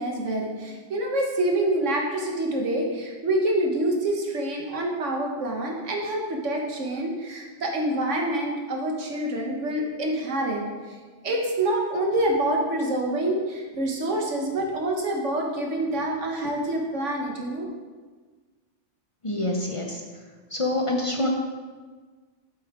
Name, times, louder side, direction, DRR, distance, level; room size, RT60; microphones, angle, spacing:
voice 1, 0.0-10.6 11.2-17.7, right 1 dB, 85° right, 1 dB, 1.6 m, -26 dB
voice 2, 19.2-20.0 20.5-21.3, left 1 dB, 30° left, 1 dB, 0.7 m, -26 dB
8.2 x 7.6 x 3.7 m, 1.4 s
omnidirectional pair, 1.2 m